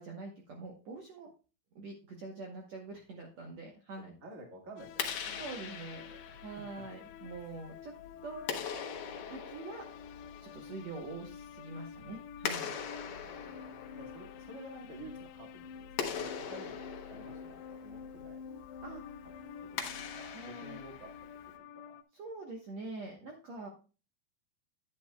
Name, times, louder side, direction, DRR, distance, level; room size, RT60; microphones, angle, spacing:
voice 1, 0.0-1.3 1.7-4.1 5.4-6.1 6.4-7.9 8.2-8.8 9.3-9.8 10.4-12.7 18.8-19.0 20.3-20.8 22.1-23.7, right 3 dB, 70° right, 1 dB, 1.6 m, -45 dB
voice 2, 4.0-5.6 6.0-6.4 12.8-16.8 17.1-18.4 19.6-21.1 21.4-22.0, right 1 dB, 55° right, 1 dB, 0.8 m, -52 dB
sound 1, 4.8-22.0, left 7 dB, 85° left, 2.6 m, -49 dB
Clapping, 4.8-21.6, left 7 dB, 65° left, 2.3 m, -43 dB
10.0 x 9.7 x 2.3 m, 0.34 s
omnidirectional pair, 4.6 m